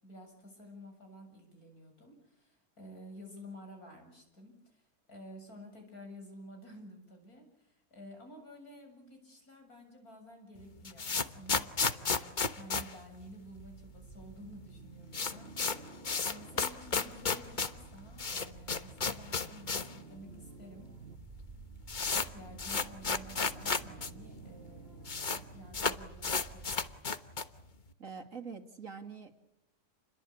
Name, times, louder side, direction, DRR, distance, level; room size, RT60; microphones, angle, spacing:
voice 1, 0.0-20.9 22.1-26.7, equal, 70° left, 3 dB, 7.8 m, -52 dB
sound 1, 10.6-13.8 14.1-14.2 14.4-14.5 14.8-20.0 20.3-20.4 21.1-21.2 21.4-24.1 24.4-24.5 24.7-25.4 25.7-27.6, left 4 dB, 35° left, 1.2 m, -33 dB
sound 2, 13.2-27.0, right 4 dB, 40° right, 2.3 m, -52 dB
voice 2, 28.0-29.4, right 5 dB, 55° right, 6 dB, 2.9 m, -45 dB
29.0 x 22.0 x 8.6 m, 0.82 s
omnidirectional pair, 1.6 m